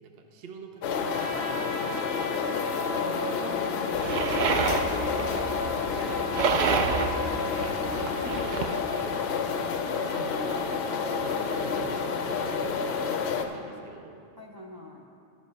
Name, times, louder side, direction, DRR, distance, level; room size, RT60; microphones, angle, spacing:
voice 1, 0.0-2.7 3.4-3.5 4.3-4.6 7.9-9.2 10.1-10.7 11.1-14.2, right 5 dB, 50° right, 4 dB, 0.9 m, -44 dB
sound 1, 0.8-13.5, left 6 dB, 60° left, 0.8 m, -29 dB
Trumpet, 1.0-7.6, left 1 dB, ahead, 1.0 m, -39 dB
voice 2, 3.3-5.5 5.8-8.9 9.9-10.7 14.4-15.1, right 1 dB, 25° right, -1 dB, 0.5 m, -43 dB
sound 2, 3.9-8.8, right 5 dB, 75° right, 0.4 m, -29 dB
13.0 x 5.0 x 5.3 m, 2.6 s
omnidirectional pair, 1.4 m